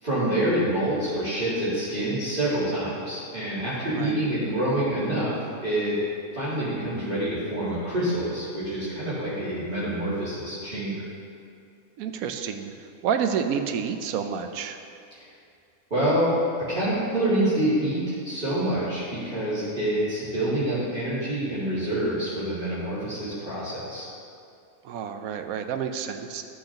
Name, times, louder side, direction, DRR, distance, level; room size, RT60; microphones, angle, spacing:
voice 1, 0.0-5.3 5.6-6.0 6.3-11.0 15.9-24.0, right 1 dB, 35° right, -14 dB, 2.5 m, -26 dB
voice 2, 3.9-4.2 12.0-12.7 13.0-14.8 24.8-26.4, right 7 dB, 80° right, 7 dB, 1.1 m, -29 dB
14.0 x 6.5 x 2.9 m, 2.5 s
omnidirectional pair, 1.5 m